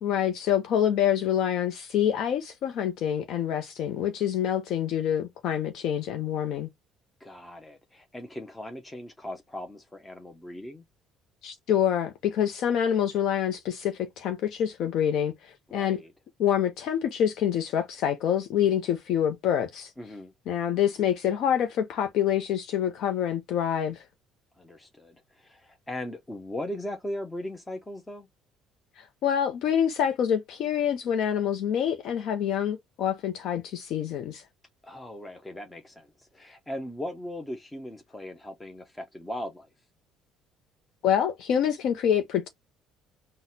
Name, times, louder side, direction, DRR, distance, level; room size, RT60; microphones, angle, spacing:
voice 1, 0.0-6.7 11.4-16.0 16.4-19.9 20.5-24.0 29.0-34.4 41.0-42.5, left 9 dB, 65° left, 0.5 m, -26 dB
voice 2, 7.2-10.8 15.7-16.1 20.0-20.3 24.6-28.3 34.8-39.7, left 1 dB, 10° left, 0.5 m, -38 dB
4.0 x 2.0 x 2.6 m
cardioid pair, 110°, 0 cm